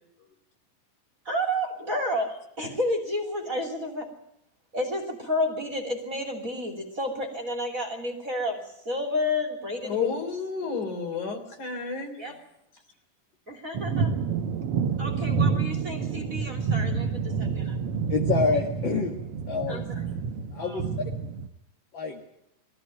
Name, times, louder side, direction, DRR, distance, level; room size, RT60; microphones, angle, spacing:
voice 1, 1.2-2.3 2.6-4.1 4.7-10.2 10.6-10.9 12.2-12.3 13.5-14.1 15.0-17.8 19.7-19.8 20.6-20.8, left 1 dB, 25° right, 2 dB, 3.0 m, -31 dB
voice 2, 9.8-12.1, left 5 dB, 60° left, 4 dB, 4.6 m, -31 dB
sound 1, 13.7-21.5, right 6 dB, 75° right, 1.3 m, -28 dB
voice 3, 18.1-19.1 19.5-19.9 20.5-20.8 21.9-22.2, left 5 dB, 40° left, 1 dB, 2.1 m, -27 dB
22.0 x 15.0 x 9.1 m, 0.79 s
omnidirectional pair, 4.0 m